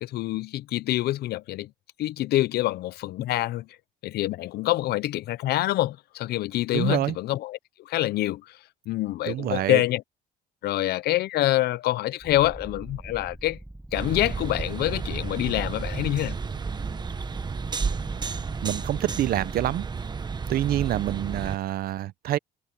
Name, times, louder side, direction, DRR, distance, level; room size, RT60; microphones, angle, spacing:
voice 1, 0.0-1.7 2.0-3.7 4.0-7.6 7.9-8.6 8.9-10.0 10.6-13.6 13.9-16.4, left 16 dB, 70° left, 0.7 m, -26 dB
voice 2, 6.7-7.2 9.3-9.8 18.6-19.9 20.5-22.4, right 13 dB, 65° right, 0.7 m, -26 dB
Purr, 12.2-19.2, right 1 dB, 5° right, 1.2 m, -42 dB
sound 1, 13.9-21.6, right 5 dB, 25° right, 1.2 m, -32 dB
cardioid pair, 110°, 17 cm